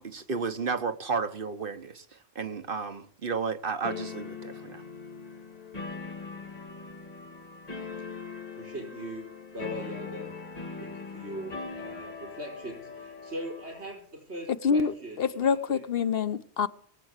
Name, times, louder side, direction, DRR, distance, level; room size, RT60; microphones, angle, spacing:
voice 1, 0.0-2.0 2.3-4.8, right 5 dB, 55° right, 1.3 m, -32 dB
sound 1, 3.8-13.9, left 5 dB, 35° left, 3.0 m, -41 dB
voice 2, 8.5-9.3 9.5-10.3 10.8-15.8, right 1 dB, 90° right, 4.9 m, -40 dB
voice 3, 14.6-16.7, left 6 dB, 65° left, 1.1 m, -26 dB
21.0 x 7.7 x 8.2 m
omnidirectional pair, 1.1 m